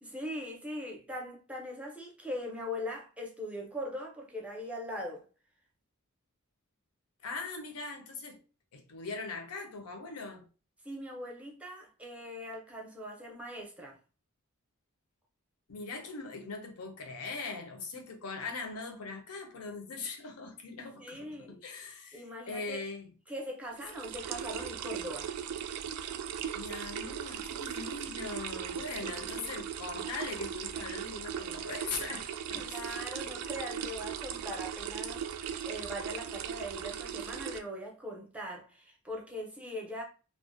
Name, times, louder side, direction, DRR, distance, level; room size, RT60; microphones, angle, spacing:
voice 1, 0.0-5.2 10.8-14.0 21.0-21.6 22.1-22.8 23.3-25.3 29.0-29.5 32.6-40.0, equal, 5° right, 0.5 m, -41 dB
voice 2, 7.2-8.4 8.7-10.5 15.7-23.0 26.5-32.9 37.2-37.3, left 4 dB, 80° left, 0.6 m, -41 dB
sound 1, 23.7-37.6, right 8 dB, 80° right, 0.3 m, -38 dB
2.4 x 2.1 x 2.4 m
head